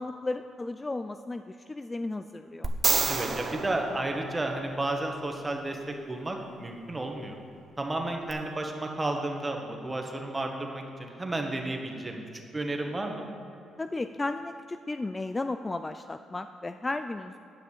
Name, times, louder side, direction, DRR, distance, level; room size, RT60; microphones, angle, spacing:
voice 1, 0.0-2.7 13.8-17.4, left 2 dB, 20° left, 9 dB, 0.3 m, -34 dB
sound 1, 2.6-4.9 8.3-8.4, right 4 dB, 40° right, 0.9 m, -29 dB
voice 2, 3.1-7.4 7.8-12.2 12.5-13.3, right 2 dB, 20° right, 2 dB, 1.4 m, -32 dB
9.7 x 5.9 x 7.2 m, 2.7 s
cardioid pair, 90°, 0 cm